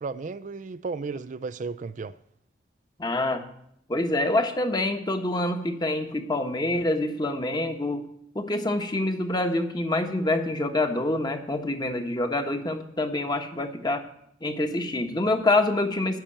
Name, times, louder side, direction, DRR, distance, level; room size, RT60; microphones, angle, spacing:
voice 1, 0.0-2.1, right 4 dB, 45° right, 0.4 m, -34 dB
voice 2, 3.0-3.4 3.9-8.0 8.3-14.0 14.4-16.2, left 2 dB, 25° left, 1.2 m, -26 dB
14.0 x 5.9 x 8.8 m
head